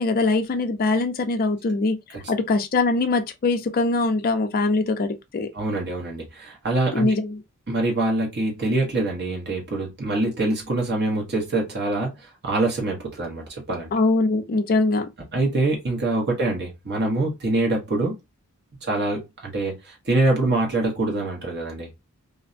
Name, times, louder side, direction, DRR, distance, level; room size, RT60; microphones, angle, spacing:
voice 1, 0.0-2.0 2.3-5.5 6.9-7.4 13.9-15.1, left 3 dB, 40° left, 0.4 m, -22 dB
voice 2, 5.5-7.1 7.7-13.9 15.3-18.1 18.8-21.9, right 2 dB, 50° right, 1.0 m, -24 dB
2.5 x 2.1 x 2.4 m
head